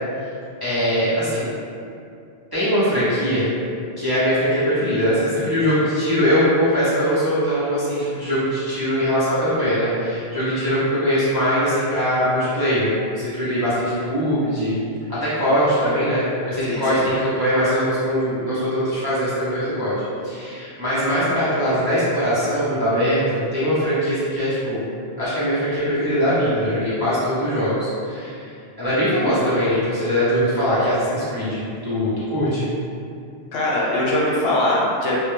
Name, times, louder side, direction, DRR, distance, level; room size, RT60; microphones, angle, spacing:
voice 1, 0.6-1.5 2.5-3.5 4.0-14.7 15.1-24.8 25.2-28.5 28.8-32.7, equal, 35° right, -13 dB, 0.4 m, -21 dB
voice 2, 33.5-35.2, left 1 dB, 75° left, -5 dB, 0.8 m, -21 dB
2.1 x 2.1 x 3.0 m, 2.5 s
omnidirectional pair, 1.1 m